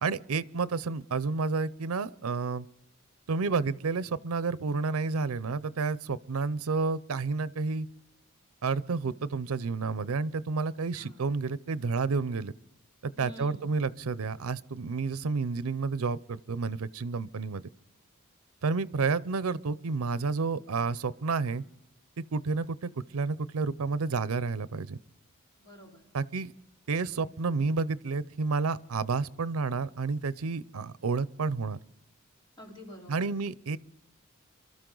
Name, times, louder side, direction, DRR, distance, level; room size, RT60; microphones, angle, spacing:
voice 1, 0.0-2.7 3.3-7.9 8.6-12.5 13.0-17.6 18.6-21.6 22.2-25.0 26.1-26.5 26.9-31.8 33.1-33.8, right 4 dB, 90° right, 0.6 m, -30 dB
voice 2, 10.9-11.3 13.2-13.8 25.6-26.1 32.6-33.4, left 1 dB, 20° left, 4.0 m, -48 dB
26.5 x 13.0 x 3.9 m
head